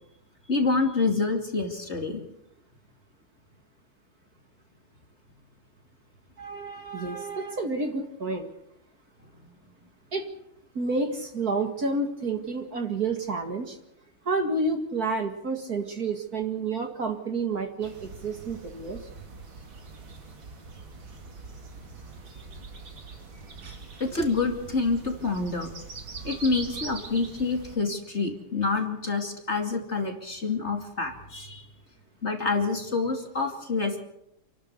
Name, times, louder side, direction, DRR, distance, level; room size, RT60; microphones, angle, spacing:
voice 1, 0.5-2.2 24.0-25.7 26.2-31.7 32.2-34.0, left 3 dB, 30° left, 4 dB, 2.8 m, -27 dB
voice 2, 6.4-8.5 10.1-10.3 10.7-13.8 14.2-19.1 26.2-26.3, right 3 dB, 45° right, 5 dB, 2.4 m, -30 dB
sound 1, 17.8-27.8, right 4 dB, 65° right, 3.6 m, -43 dB
28.5 x 12.5 x 8.2 m, 0.80 s
omnidirectional pair, 2.4 m